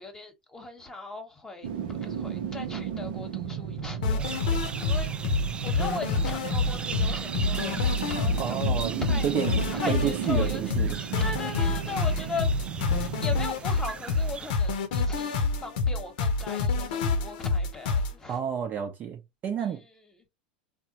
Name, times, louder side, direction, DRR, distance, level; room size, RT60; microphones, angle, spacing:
voice 1, 0.0-1.7 2.0-5.1 5.6-8.6 9.0-9.3 9.7-12.5 12.9-18.4 19.6-19.9, left 3 dB, 10° left, 1.1 m, -38 dB
sound 1, 1.6-14.7 15.0-15.1, right 8 dB, 70° right, 0.7 m, -35 dB
sound 2, 4.0-18.1, left 4 dB, 65° left, 0.7 m, -27 dB
sound 3, 4.2-14.5, right 5 dB, 20° right, 0.3 m, -40 dB
voice 2, 8.4-9.6 9.9-11.0 18.3-19.8, right 8 dB, 35° right, 0.7 m, -30 dB
3.5 x 2.2 x 2.8 m
hypercardioid pair, 90°, 5 cm